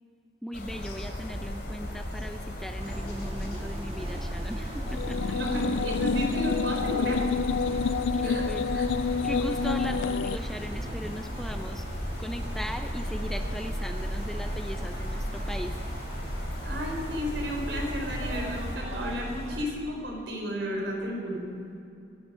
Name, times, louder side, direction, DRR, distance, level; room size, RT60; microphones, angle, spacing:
voice 1, 0.4-5.4 8.1-8.8 9.2-15.8, equal, ahead, 6 dB, 0.5 m, -38 dB
sound 1, 0.5-18.8, left 1 dB, 60° left, 2.9 m, -37 dB
sound 2, 2.8-19.7, right 1 dB, 30° right, 1.4 m, -36 dB
sound 3, 4.9-10.4, left 5 dB, 80° left, 0.3 m, -28 dB
voice 2, 5.3-7.2 8.2-8.4 8.7-8.8 16.6-21.4, equal, 75° right, 0 dB, 3.9 m, -33 dB
23.5 x 10.0 x 5.4 m, 2.7 s
head